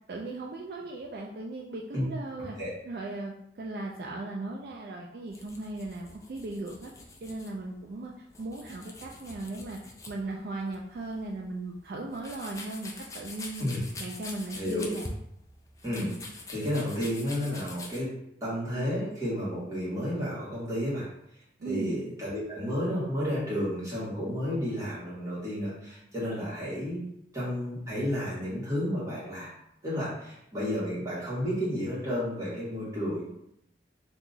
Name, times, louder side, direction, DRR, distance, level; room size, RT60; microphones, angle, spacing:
voice 1, 0.1-2.6 2.8-6.9 7.2-13.7 14.0-15.0 21.6-22.0, right 2 dB, 60° right, -1 dB, 0.3 m, -37 dB
sound 1, 5.3-18.0, left 2 dB, 20° left, 0.4 m, -45 dB
voice 2, 14.5-14.9 15.8-16.1 16.5-18.1 18.4-21.1 21.6-27.0 27.3-29.5 29.8-33.3, equal, 20° right, -9 dB, 1.4 m, -31 dB
2.8 x 2.3 x 3.9 m, 0.79 s
head